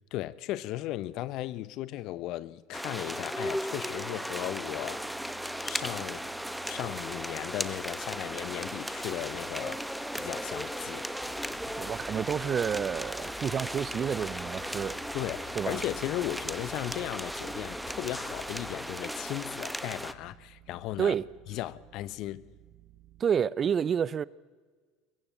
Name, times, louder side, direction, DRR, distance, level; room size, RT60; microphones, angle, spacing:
voice 1, 0.1-5.1 5.6-6.2 6.6-9.9 10.1-11.1 15.1-21.1 21.5-22.4, left 15 dB, 60° left, 1.0 m, -36 dB
sound 1, 2.7-20.1, equal, ahead, 1.1 m, -36 dB
sound 2, 4.4-13.6 14.0-23.2, right 12 dB, 65° right, 2.0 m, -57 dB
sound 3, 11.2-18.8, left 6 dB, 30° left, 0.7 m, -51 dB
voice 2, 11.8-15.0 15.6-15.8 21.0-21.3 23.2-24.2, right 7 dB, 35° right, 0.6 m, -29 dB
22.0 x 22.0 x 8.0 m
supercardioid pair, 95°, 0 cm